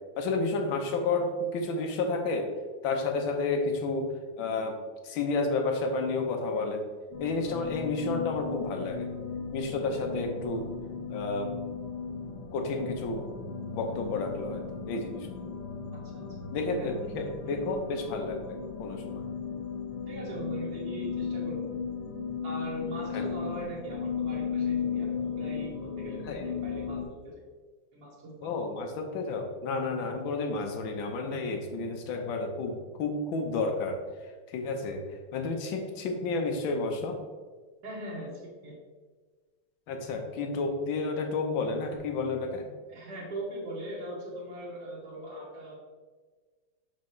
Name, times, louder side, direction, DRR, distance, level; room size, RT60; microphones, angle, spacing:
voice 1, 0.2-2.5 2.8-4.8 5.0-6.8 7.2-9.1 9.5-10.6 11.1-11.5 12.5-13.2 13.7-15.3 16.5-19.2 23.1-23.2 26.2-26.5 28.4-34.0 34.5-37.2 39.9-42.7, left 3 dB, 70° left, 4 dB, 1.5 m, -31 dB
sound 1, 7.1-27.0, left 6 dB, 85° left, 1.8 m, -36 dB
voice 2, 15.9-16.2 16.7-16.9 20.0-21.7 22.4-27.4 27.9-28.5 37.8-38.7 42.9-45.7, right 1 dB, 50° right, -7 dB, 1.7 m, -40 dB
6.6 x 4.7 x 3.1 m, 1.4 s
omnidirectional pair, 2.4 m